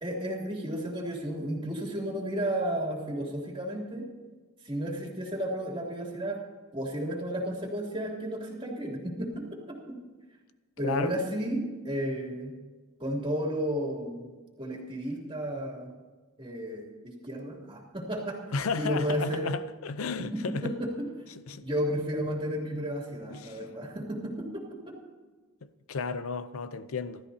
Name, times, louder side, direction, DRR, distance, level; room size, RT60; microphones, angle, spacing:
voice 1, 0.0-4.1 4.6-6.4 6.7-10.0 10.8-12.5 13.0-14.3 14.6-15.9 16.4-18.4 18.8-19.5 20.2-21.1 21.6-25.0, equal, 25° right, 2.8 m, -33 dB
voice 2, 10.8-11.2 18.5-20.7 21.5-21.6 23.3-23.6 25.6-27.2, left 4 dB, 75° left, 0.6 m, -33 dB
26.5 x 13.0 x 2.8 m
head